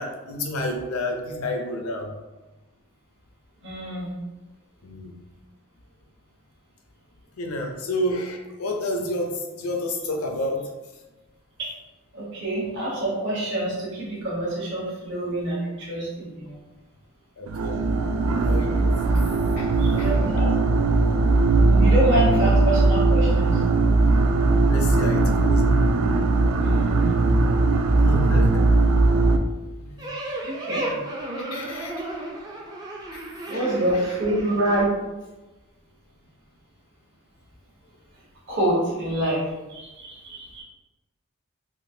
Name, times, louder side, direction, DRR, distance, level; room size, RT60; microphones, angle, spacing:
voice 1, 0.0-2.1 4.8-5.1 7.4-10.6 17.4-17.8 18.3-18.9 19.6-20.2 24.5-25.9 28.0-28.7 29.8-30.1 30.9-31.0 31.5-32.2 33.1-33.2 33.5-33.6, left 1 dB, 90° left, 2 dB, 0.6 m, -30 dB
voice 2, 3.6-4.1 11.6-11.7 12.1-16.5 19.8-20.5 21.5-23.6 26.6-27.5 30.4-30.9 33.5-34.9 38.5-40.6, right 1 dB, 55° right, -7 dB, 1.1 m, -26 dB
sound 1, 17.5-29.4, right 3 dB, 80° right, 0.3 m, -19 dB
sound 2, 30.0-34.8, right 1 dB, 20° right, 0.4 m, -34 dB
3.6 x 2.5 x 2.7 m, 1.1 s
head